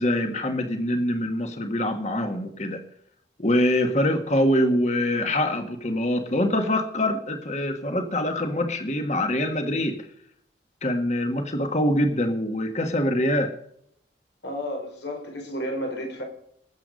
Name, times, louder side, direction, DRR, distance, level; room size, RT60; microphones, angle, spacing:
voice 1, 0.0-2.8 3.4-10.0 10.8-13.5, left 1 dB, 40° left, 6 dB, 1.7 m, -24 dB
voice 2, 14.4-16.2, equal, 85° left, 2 dB, 4.7 m, -32 dB
19.5 x 8.0 x 5.3 m, 0.69 s
head